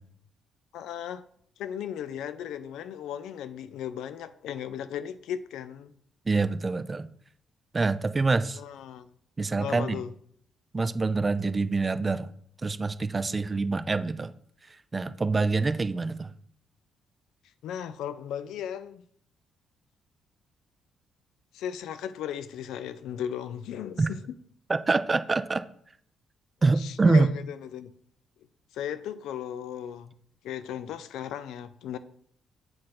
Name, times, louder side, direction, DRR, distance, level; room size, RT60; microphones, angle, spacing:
voice 1, 0.7-1.2 1.6-5.9 8.5-9.1 9.6-10.1 17.6-19.0 21.5-24.4 26.8-27.9 28.7-30.1 30.4-32.0, left 9 dB, 85° left, 0.4 m, -36 dB
voice 2, 6.3-7.1 7.7-8.6 9.4-10.0 10.7-12.3 12.6-14.3 14.9-16.3 24.0-24.1 24.7-25.6 26.6-27.3, right 3 dB, 25° right, 0.4 m, -25 dB
7.6 x 2.5 x 5.8 m
cardioid pair, 90°, 0 cm